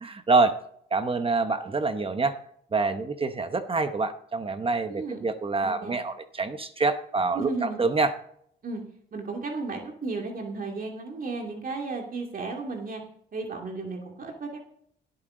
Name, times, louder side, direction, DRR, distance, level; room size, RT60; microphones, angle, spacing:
voice 1, 0.0-0.6 0.9-2.3 2.7-8.1, right 3 dB, 30° right, 9 dB, 0.9 m, -26 dB
voice 2, 4.8-5.2 5.6-6.0 7.3-7.8 8.6-8.8 9.1-13.0 13.3-14.6, right 3 dB, 45° right, 1 dB, 2.5 m, -34 dB
16.5 x 8.8 x 3.8 m, 0.66 s
cardioid pair, 90°, 20 cm